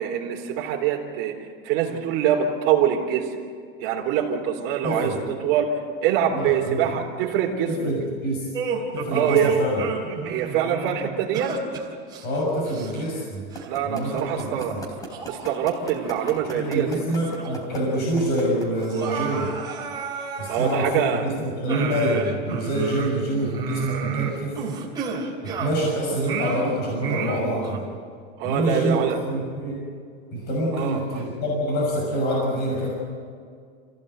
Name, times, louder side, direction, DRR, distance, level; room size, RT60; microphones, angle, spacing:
voice 1, 0.0-1.3 1.6-3.3 3.8-5.7 6.0-7.9 9.1-9.6 10.3-11.6 13.7-14.8 15.3-17.2 20.5-21.2 28.4-29.2 30.7-31.2, right 9 dB, 40° right, 0 dB, 3.8 m, -24 dB
voice 2, 4.8-5.2 6.3-6.9 7.7-8.5 8.9-9.8 12.2-13.4 13.8-14.8 16.5-19.5 20.4-24.6 25.4-27.8 28.4-29.8 30.3-32.9, right 1 dB, 30° left, -2 dB, 6.4 m, -26 dB
sound 1, 8.5-13.2 13.5-13.7 14.4-14.5 15.1-16.4 16.8-16.9 17.3-17.9 18.1-18.2 18.7-21.2 21.7-25.9 26.2-27.8, right 5 dB, 15° right, 3.5 m, -31 dB
sound 2, 13.5-19.3, right 1 dB, 10° left, 3.5 m, -37 dB
28.0 x 16.5 x 8.1 m, 2.2 s
supercardioid pair, 170°, 31 cm